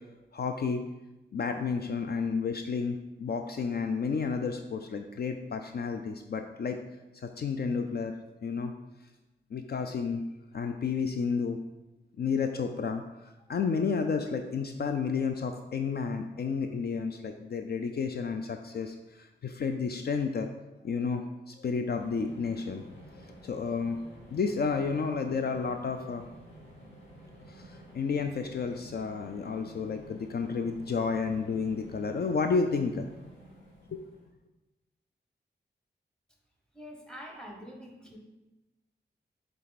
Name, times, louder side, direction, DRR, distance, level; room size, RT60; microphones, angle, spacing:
voice 1, 0.3-0.9 1.3-6.8 7.2-8.1 8.4-8.7 9.5-10.2 10.5-11.6 12.2-20.5 20.8-22.8 23.1-24.0 24.3-26.2 27.5-33.1 33.9-34.0, left 5 dB, 55° left, 6 dB, 0.4 m, -31 dB
sound 1, 21.9-34.3, equal, 75° left, 1.9 m, -51 dB
voice 2, 36.7-38.2, equal, 5° left, 0 dB, 1.1 m, -45 dB
7.5 x 3.4 x 4.0 m, 1.0 s
wide cardioid pair, 120°, 19 cm